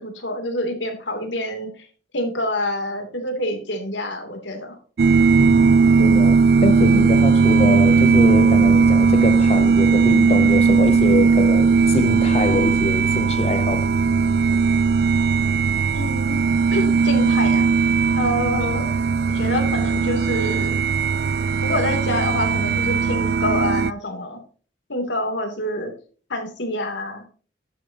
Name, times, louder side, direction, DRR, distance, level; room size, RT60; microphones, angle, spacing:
voice 1, 0.0-1.7 2.1-4.8 15.9-16.4 16.7-17.7 18.2-18.9 19.3-20.8 21.6-24.4 24.9-25.9 26.3-27.2, left 1 dB, 85° left, 2.8 m, -27 dB
sound 1, 5.0-23.9, right 5 dB, 60° right, 0.4 m, -17 dB
voice 2, 5.4-5.7 6.0-13.9, left 2 dB, 35° left, 0.5 m, -24 dB
11.5 x 8.8 x 2.8 m
head